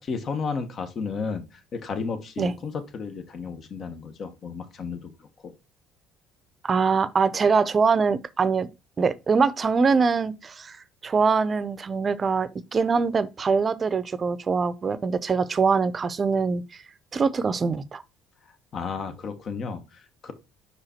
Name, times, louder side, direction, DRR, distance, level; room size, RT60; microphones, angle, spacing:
voice 1, 0.0-5.5 18.7-20.3, left 5 dB, 45° left, 1.2 m, -33 dB
voice 2, 6.6-8.7 9.0-16.8 17.1-18.0, right 5 dB, 35° right, 0.6 m, -23 dB
5.5 x 4.9 x 4.3 m
supercardioid pair, 90°, 0 cm